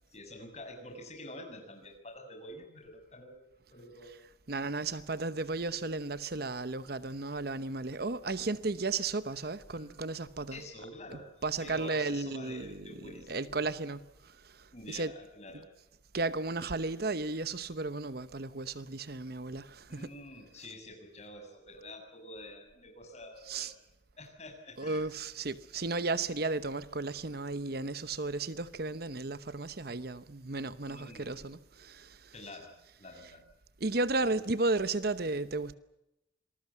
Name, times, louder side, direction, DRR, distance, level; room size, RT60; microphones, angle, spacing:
voice 1, 0.1-3.5 3.7-4.2 9.7-10.0 10.5-13.5 13.8-13.9 14.7-15.7 19.9-23.7 24.2-25.1 30.8-31.5 32.3-32.7 33.0-33.4 34.2-34.4, left 1 dB, 35° left, 6.9 m, -48 dB
voice 2, 4.0-10.6 11.1-15.1 16.1-20.1 20.6-20.7 23.4-23.7 24.8-32.5 33.1-33.3 33.8-35.7, right 3 dB, 55° right, 0.9 m, -34 dB
27.0 x 20.5 x 7.2 m
head